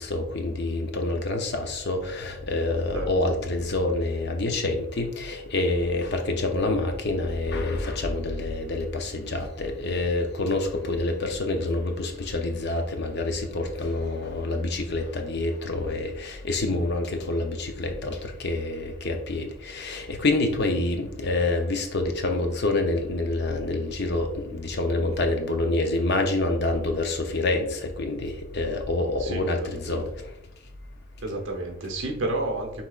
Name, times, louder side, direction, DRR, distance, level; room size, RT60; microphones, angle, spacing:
voice 1, 0.0-30.1, left 2 dB, 50° left, 5 dB, 0.6 m, -27 dB
voice 2, 29.2-30.0 31.2-32.8, right 2 dB, 55° right, 2 dB, 0.9 m, -31 dB
5.7 x 3.5 x 2.4 m, 0.78 s
head